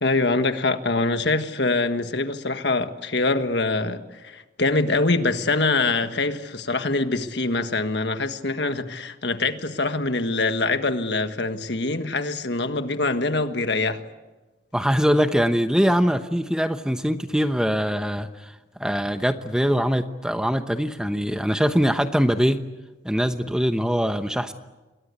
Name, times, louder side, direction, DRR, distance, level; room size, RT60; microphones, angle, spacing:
voice 1, 0.0-14.0, left 3 dB, 60° left, 1.6 m, -24 dB
voice 2, 14.7-18.5 18.8-22.6 23.0-24.5, equal, 5° right, 0.9 m, -22 dB
27.5 x 22.0 x 8.3 m
head